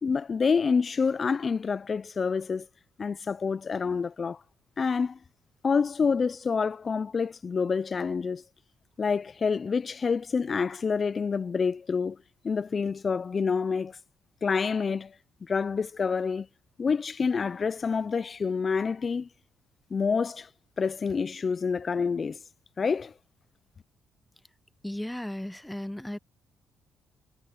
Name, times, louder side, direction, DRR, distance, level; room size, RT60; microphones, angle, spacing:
voice 1, 0.0-2.7 3.0-4.4 4.8-5.2 5.6-8.4 9.0-12.2 12.4-14.0 14.4-15.2 15.4-16.5 16.8-19.3 19.9-20.5 20.8-22.4 22.8-23.1, left 5 dB, 40° left, 0.4 m, -27 dB
voice 2, 24.8-26.2, left 1 dB, 5° left, 0.7 m, -35 dB
cardioid pair, 90°, 0 cm